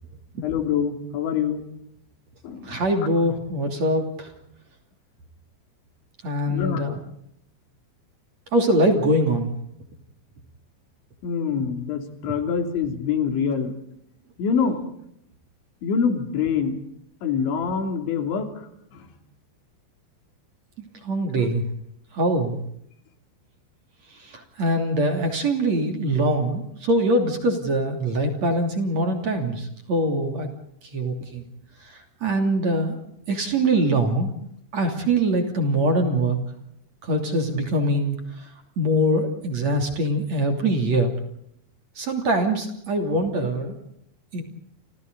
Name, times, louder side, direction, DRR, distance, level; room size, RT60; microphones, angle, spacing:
voice 1, 0.4-1.6 2.4-2.8 6.5-6.9 11.2-13.7 14.4-14.9 15.8-16.8 17.2-19.1, left 6 dB, 80° left, 5 dB, 5.2 m, -25 dB
voice 2, 2.6-4.3 6.2-7.0 8.5-9.5 21.0-21.6 22.1-22.6 24.2-30.5 30.9-31.4 31.9-33.0 33.3-34.3 34.7-36.4 37.0-38.2 38.8-41.2 42.0-43.8 44.3-44.4, right 1 dB, 40° right, 4 dB, 3.7 m, -23 dB
30.0 x 27.5 x 4.0 m, 0.73 s
omnidirectional pair, 5.2 m